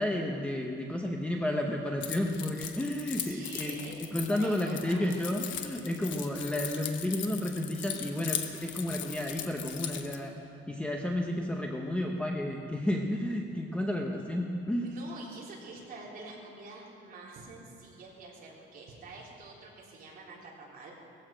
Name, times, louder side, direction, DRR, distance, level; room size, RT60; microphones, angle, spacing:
voice 1, 0.0-10.3 10.7-14.9, left 1 dB, 5° left, 1 dB, 0.8 m, -32 dB
Keys jangling, 2.0-10.2, left 9 dB, 65° left, 1.1 m, -39 dB
voice 2, 3.2-5.1 14.8-20.9, right 3 dB, 45° right, -4 dB, 3.6 m, -47 dB
18.5 x 15.0 x 5.1 m, 2.9 s
cardioid pair, 180°, 21 cm